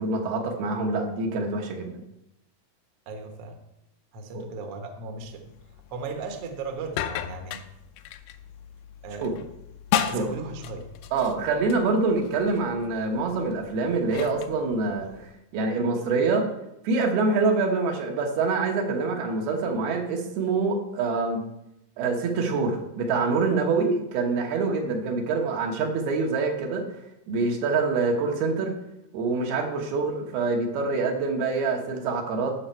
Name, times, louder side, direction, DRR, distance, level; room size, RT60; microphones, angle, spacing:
voice 1, 0.0-1.9 4.3-4.4 9.2-9.3 10.1-10.2 11.1-15.1 15.5-16.5 16.8-21.4 22.0-26.8 27.3-28.7 29.1-32.5, right 4 dB, 85° right, 2 dB, 3.3 m, -25 dB
voice 2, 3.1-3.6 4.1-5.5 5.9-7.6 9.0-9.5 10.1-10.9, right 3 dB, 65° right, 4 dB, 1.4 m, -36 dB
sound 1, 5.2-15.3, left 10 dB, 80° left, 2.3 m, -36 dB
12.5 x 6.1 x 4.5 m, 0.84 s
omnidirectional pair, 4.4 m